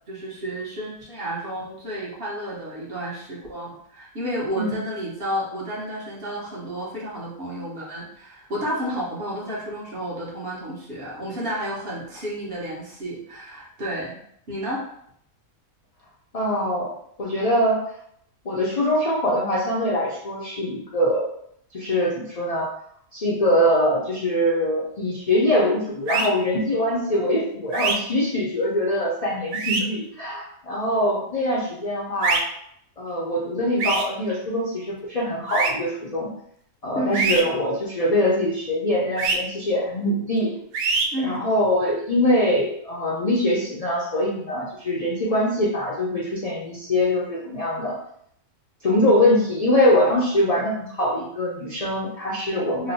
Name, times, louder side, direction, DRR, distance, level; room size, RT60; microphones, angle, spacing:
voice 1, 0.1-14.2 14.5-14.8 36.9-37.4 41.1-41.5 52.8-52.9, equal, 45° right, -5 dB, 0.9 m, -31 dB
voice 2, 16.3-16.9 17.2-17.8 18.4-21.3 21.7-22.7 23.1-32.4 33.0-36.3 36.8-40.5 41.2-48.0 48.8-52.9, left 1 dB, 75° left, -6 dB, 0.3 m, -23 dB
sound 1, 26.1-26.3 27.7-28.0 29.5-29.8 32.2-32.4 33.8-34.0 35.5-35.7 37.1-37.4 39.2-39.4 40.7-41.1, right 4 dB, 80° right, 1.1 m, -23 dB
3.0 x 2.1 x 4.0 m, 0.69 s
omnidirectional pair, 1.6 m